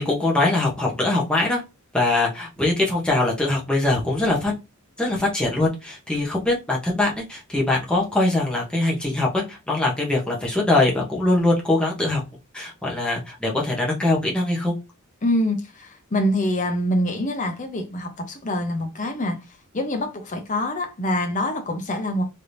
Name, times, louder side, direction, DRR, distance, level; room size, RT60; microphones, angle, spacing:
voice 1, 0.0-1.6 1.9-4.5 5.0-12.2 12.5-14.7, left 2 dB, 5° left, 0.8 m, -22 dB
voice 2, 15.2-19.4 19.7-22.2, left 1 dB, 35° left, 0.7 m, -25 dB
3.4 x 2.9 x 2.6 m
head